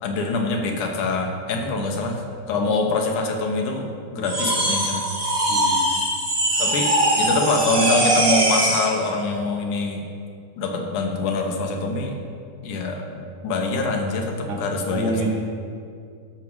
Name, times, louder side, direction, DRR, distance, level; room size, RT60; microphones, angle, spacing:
voice 1, 0.0-2.2 2.5-5.1 6.6-10.0 10.6-12.1 12.6-15.3, left 3 dB, 85° left, 2 dB, 2.6 m, -24 dB
sound 1, 4.2-9.0, right 1 dB, 20° right, 1.0 m, -21 dB
voice 2, 5.5-5.8 14.5-14.6 14.9-15.3, right 2 dB, 55° right, -1 dB, 1.8 m, -27 dB
13.0 x 4.6 x 6.1 m, 2.4 s
omnidirectional pair, 3.5 m